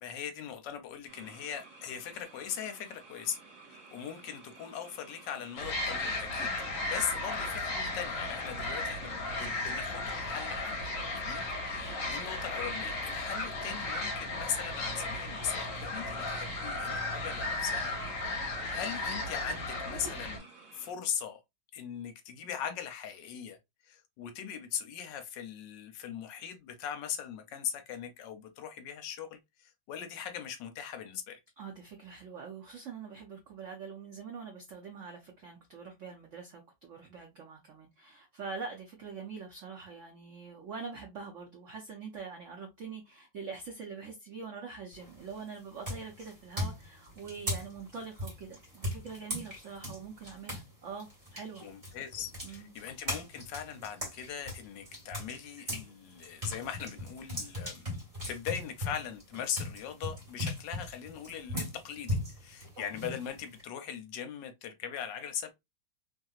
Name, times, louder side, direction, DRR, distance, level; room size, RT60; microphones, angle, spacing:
voice 1, 0.0-3.4 3.6-6.5 6.8-10.8 11.1-17.9 18.7-20.5 20.7-21.4 21.7-23.6 23.8-31.4 51.6-57.9 58.3-65.5, left 8 dB, 70° left, 1.2 m, -40 dB
sound 1, 1.1-20.9, right 3 dB, 45° right, 1.7 m, -55 dB
sound 2, 5.6-20.4, left 2 dB, 50° left, 1.1 m, -35 dB
voice 2, 31.6-51.7 52.4-52.7, right 5 dB, 85° right, 0.6 m, -44 dB
sound 3, 44.9-45.3 45.8-50.7 51.0-55.9 56.2-63.6, left 1 dB, 20° right, 1.4 m, -38 dB
3.2 x 2.8 x 2.3 m
omnidirectional pair, 2.2 m